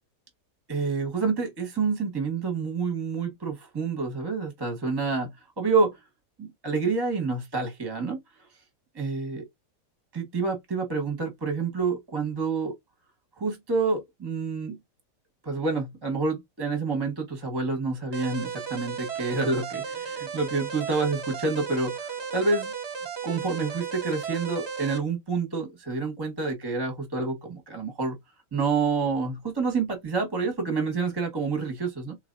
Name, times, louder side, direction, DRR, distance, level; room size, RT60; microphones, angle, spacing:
voice 1, 0.7-5.3 5.6-6.0 6.4-8.2 8.9-9.4 10.1-12.8 13.4-14.8 15.4-22.7 23.2-28.2 28.5-32.2, right 4 dB, 15° right, 1.0 m, -28 dB
sound 1, 18.1-25.0, right 6 dB, 50° right, 0.9 m, -35 dB
3.9 x 3.3 x 2.5 m
omnidirectional pair, 1.7 m